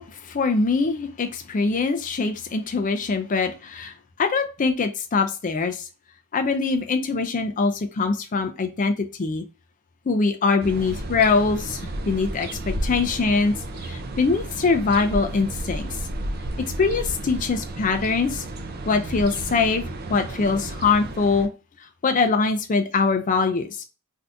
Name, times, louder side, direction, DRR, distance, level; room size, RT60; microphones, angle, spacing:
voice 1, 0.0-5.9 6.3-9.4 10.1-11.8 12.1-13.5 13.8-16.0 16.6-18.4 18.9-19.8 20.1-21.5 22.0-23.8, left 4 dB, 35° left, 6 dB, 0.4 m, -23 dB
sound 1, 10.6-21.5, right 1 dB, 45° right, 0.5 m, -32 dB
3.4 x 2.6 x 2.5 m, 0.30 s
head